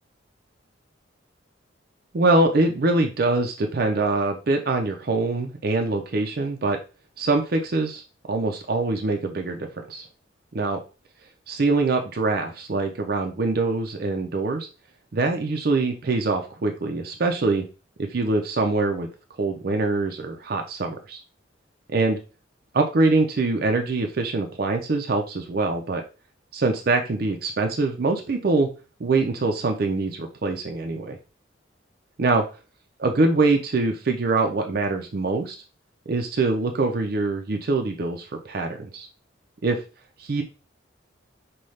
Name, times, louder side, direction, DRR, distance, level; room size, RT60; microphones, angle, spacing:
voice 1, 2.1-6.8 7.2-8.0 8.3-10.1 10.5-10.8 11.5-14.7 15.1-17.6 18.1-19.1 19.4-21.2 21.9-22.2 22.7-26.0 26.5-28.7 29.0-31.2 32.2-32.4 33.0-35.6 36.1-39.1 39.6-39.8 40.2-40.4, right 3 dB, 50° right, 4 dB, 0.5 m, -24 dB
5.4 x 2.3 x 3.2 m, 0.32 s
head